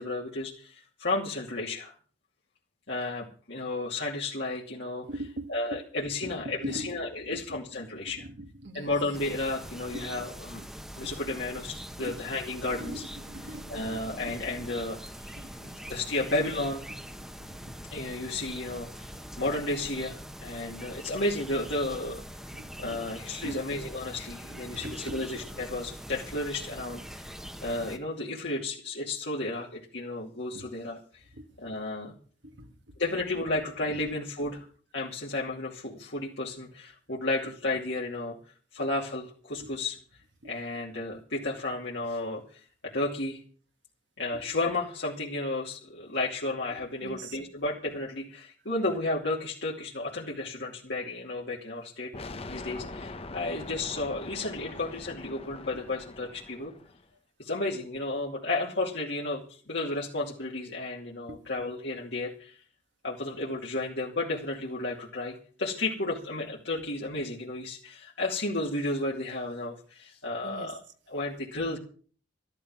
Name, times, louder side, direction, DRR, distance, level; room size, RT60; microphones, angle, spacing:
voice 1, 0.0-1.9 2.9-5.1 5.5-8.3 8.7-10.6 11.0-13.0 13.7-15.0 15.6-16.9 17.9-19.1 19.4-22.2 22.8-27.3 27.6-31.2 31.6-32.2 33.0-34.7 34.9-38.4 38.7-40.0 40.4-43.4 44.2-56.7 57.4-62.6 63.0-70.8 71.1-71.8, left 2 dB, 65° left, -4 dB, 2.6 m, -33 dB
voice 2, 5.1-5.8 6.2-6.9 7.3-7.4 8.2-8.9 9.9-10.1 11.0-11.1 12.0-12.1 12.7-14.3 15.3-15.5 17.4-17.7 22.5-23.0 23.4-23.7 24.7-25.2 30.5-30.7 31.4-31.5 32.4-32.7 39.6-39.7 40.4-40.5 47.0-47.4 61.3-61.5 70.4-70.7, right 1 dB, 70° right, 6 dB, 1.9 m, -41 dB
sound 1, 9.1-28.0, equal, 5° right, 1.2 m, -43 dB
sound 2, 52.1-57.0, left 2 dB, 30° left, 1.0 m, -42 dB
13.5 x 12.5 x 6.1 m, 0.42 s
head